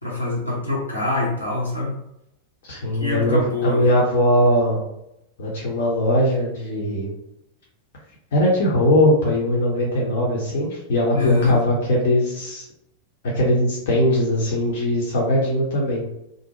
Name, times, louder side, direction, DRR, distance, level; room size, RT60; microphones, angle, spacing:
voice 1, 0.0-2.0 3.0-3.9 11.1-11.6, left 3 dB, 85° left, -6 dB, 0.9 m, -24 dB
voice 2, 2.6-4.8 5.4-7.1 8.3-12.6 13.3-16.1, left 1 dB, 55° left, -4 dB, 0.7 m, -20 dB
2.5 x 2.0 x 2.9 m, 0.83 s
figure-of-eight pair, 90°, 0 cm